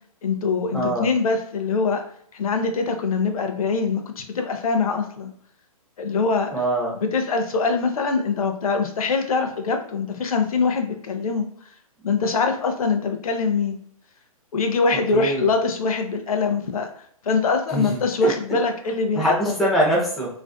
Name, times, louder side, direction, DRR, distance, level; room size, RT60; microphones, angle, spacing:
voice 1, 0.2-2.0 2.3-5.3 6.0-6.5 6.9-11.5 12.0-13.8 14.5-16.9 17.2-19.6, left 4 dB, 70° left, 6 dB, 0.5 m, -23 dB
voice 2, 0.7-1.1 6.5-6.9 15.1-15.4 17.7-18.3 19.1-20.3, equal, ahead, -5 dB, 0.3 m, -23 dB
2.5 x 2.4 x 2.2 m, 0.62 s
hypercardioid pair, 135°, 19 cm